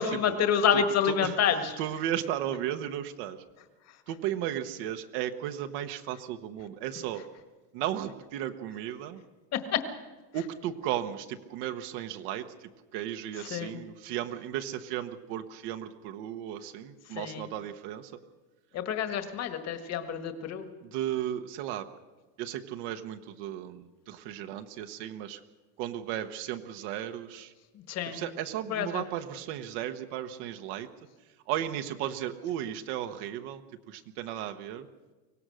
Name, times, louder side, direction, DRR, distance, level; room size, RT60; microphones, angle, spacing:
voice 1, 0.0-1.7 9.5-9.8 13.5-13.8 17.1-17.5 18.7-20.7 27.9-28.2 28.7-29.0, left 8 dB, 30° left, 8 dB, 1.7 m, -28 dB
voice 2, 0.7-1.4 1.8-3.4 4.1-7.2 7.7-9.2 10.3-18.1 20.8-21.9 22.4-25.4 25.8-27.5 28.1-30.9 31.5-33.6 33.9-34.9, right 11 dB, 55° right, 7 dB, 1.2 m, -35 dB
24.0 x 18.0 x 6.4 m, 1.2 s
cardioid pair, 160°, 49 cm